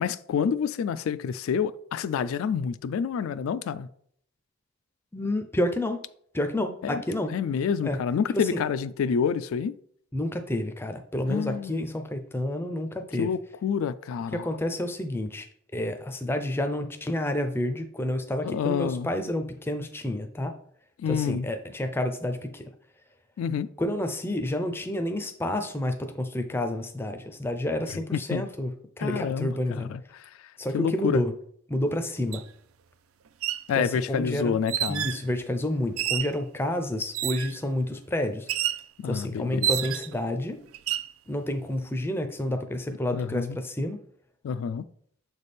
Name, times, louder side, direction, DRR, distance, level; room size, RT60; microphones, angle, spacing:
voice 1, 0.0-3.9 6.8-7.0 7.3-9.8 11.3-11.8 13.2-14.4 18.4-19.1 21.0-21.5 23.4-23.7 28.1-28.5 29.0-30.3 30.7-31.2 33.7-35.1 39.0-39.7 43.1-43.6 44.4-44.9, left 7 dB, 75° left, 0.3 m, -28 dB
voice 2, 5.1-6.0 6.3-7.3 7.8-8.0 8.3-8.6 10.1-13.3 14.3-15.5 15.7-20.5 21.1-22.7 23.8-29.9 30.6-31.3 31.7-32.4 33.8-34.6 34.9-38.5 39.0-40.6 41.3-44.0, left 1 dB, 10° left, 0.4 m, -29 dB
sound 1, 32.3-32.4 33.3-33.7 34.7-35.2 36.0-36.4 37.1-37.6 38.5-38.8 39.6-40.2 40.7-41.1, right 11 dB, 80° right, 0.4 m, -29 dB
6.8 x 3.4 x 4.1 m
head